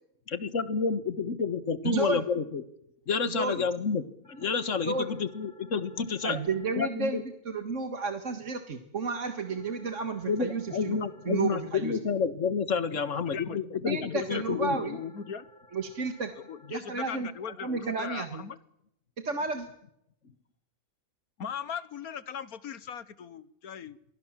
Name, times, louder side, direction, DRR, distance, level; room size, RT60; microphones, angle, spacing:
voice 1, 0.3-2.6 3.1-6.4 6.8-7.2 10.3-14.8, left 5 dB, 60° left, 14 dB, 1.8 m, -29 dB
voice 2, 1.8-2.2 3.3-3.6 4.9-5.1 6.2-7.2 7.5-12.0 13.9-15.0 15.7-16.3 16.7-17.3 17.6-18.4 19.2-19.7, right 4 dB, 55° right, 7 dB, 2.0 m, -32 dB
sound 1, 4.2-6.7 9.2-11.7 14.2-16.7, left 1 dB, 5° left, 6.2 m, -58 dB
voice 3, 13.3-15.5 16.5-18.6 21.4-24.0, left 7 dB, 80° left, 16 dB, 1.7 m, -39 dB
29.5 x 23.0 x 7.5 m, 0.80 s
omnidirectional pair, 1.5 m